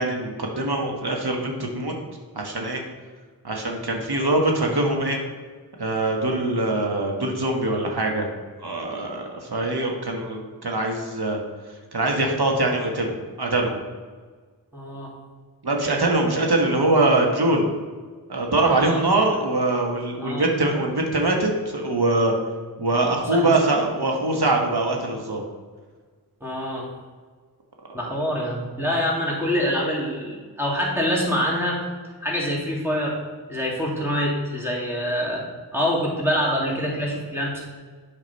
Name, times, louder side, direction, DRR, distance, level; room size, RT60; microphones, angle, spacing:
voice 1, 0.0-1.9 2.3-2.8 3.4-5.2 5.8-8.3 8.6-11.4 11.9-13.8 15.6-17.7 18.3-22.3 22.8-25.4 27.9-28.0, right 2 dB, 75° right, 1 dB, 1.4 m, -23 dB
voice 2, 14.7-15.1 18.6-19.0 20.2-20.5 23.3-23.8 26.4-26.9 27.9-31.8 32.2-33.2 33.5-35.4 35.7-37.6, equal, 5° right, -4 dB, 2.3 m, -25 dB
8.5 x 5.2 x 4.1 m, 1.5 s
wide cardioid pair, 50°, 39 cm